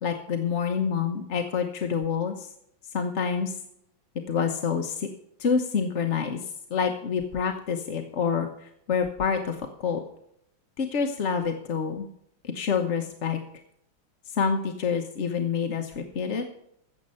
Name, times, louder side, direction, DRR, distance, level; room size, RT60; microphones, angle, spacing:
voice 1, 0.0-2.5 2.9-3.5 4.3-5.1 5.4-6.4 6.7-10.0 10.8-12.1 12.4-13.4 14.3-16.5, left 6 dB, 45° left, 4 dB, 1.0 m, -27 dB
15.0 x 7.5 x 5.5 m, 0.74 s
omnidirectional pair, 2.2 m